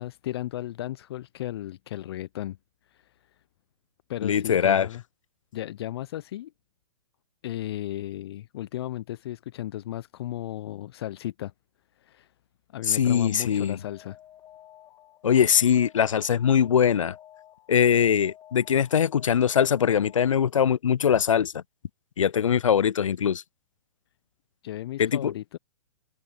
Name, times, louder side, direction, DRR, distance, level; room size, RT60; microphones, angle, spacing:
voice 1, 0.0-2.6 2.9-3.0 4.1-5.0 5.5-6.5 7.4-11.5 12.0-12.3 12.7-14.2 24.6-25.6, left 13 dB, 50° left, 0.8 m, -35 dB
voice 2, 4.2-4.9 12.9-13.8 15.2-17.1 17.7-21.6 22.2-23.4 25.0-25.3, left 8 dB, 80° left, 0.4 m, -22 dB
Alarm, 13.5-20.6, left 11 dB, 20° left, 2.2 m, -52 dB
hypercardioid pair, 120°, 16 cm